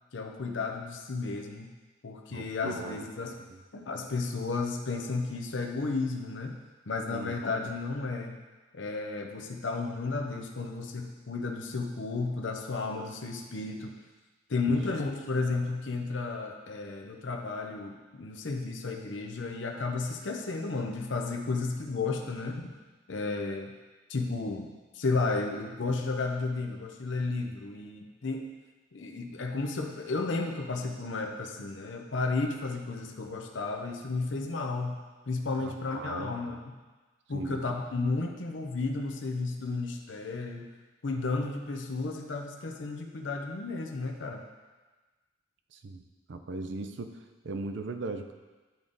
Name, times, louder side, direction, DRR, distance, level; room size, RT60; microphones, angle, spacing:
voice 1, 0.1-1.7 2.0-3.4 3.7-8.4 8.7-13.9 14.5-22.7 23.1-23.7 24.1-28.5 28.9-36.7 37.3-40.7 41.0-44.4, left 3 dB, 70° left, 3 dB, 0.7 m, -33 dB
voice 2, 2.3-3.0 3.5-3.6 7.1-7.4 14.7-14.8 35.6-36.4 37.3-37.6 45.7-48.3, right 3 dB, 65° right, 7 dB, 0.5 m, -38 dB
10.5 x 3.6 x 3.9 m, 1.3 s
head